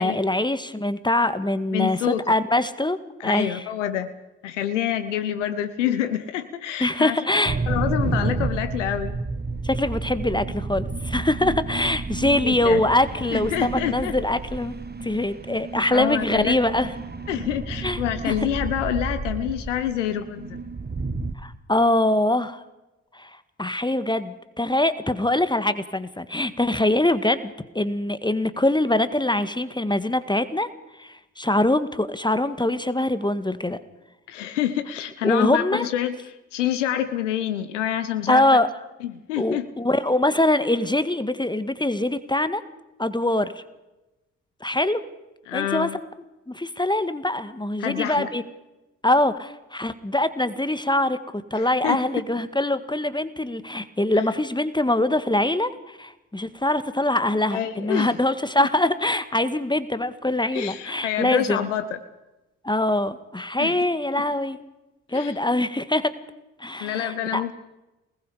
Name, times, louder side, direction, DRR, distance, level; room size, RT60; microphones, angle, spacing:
voice 1, 0.0-3.0 3.2-3.6 6.8-7.6 9.6-14.7 15.0-16.9 17.8-18.0 18.3-18.4 21.4-22.6 23.1-23.3 23.6-30.7 31.0-33.8 35.2-35.9 38.3-38.7 39.4-42.6 43.0-43.6 44.6-45.0 45.5-45.9 46.5-48.4 49.0-61.6 62.6-64.6 65.1-66.1 66.6-67.4, left 1 dB, 10° left, 13 dB, 1.8 m, -23 dB
voice 2, 1.7-2.2 3.2-4.1 4.4-7.2 7.7-9.2 12.4-12.8 13.3-14.2 15.9-16.6 17.3-20.6 34.3-38.4 39.0-39.7 45.5-46.0 47.8-48.3 51.5-52.0 54.1-54.2 57.5-58.2 60.5-62.0 63.6-63.7 65.1-65.4 66.8-67.5, left 11 dB, 85° left, 12 dB, 0.9 m, -27 dB
sound 1, 7.5-21.3, right 3 dB, 30° right, 2.1 m, -31 dB
28.5 x 20.5 x 5.0 m, 1.0 s
hypercardioid pair, 40°, 35 cm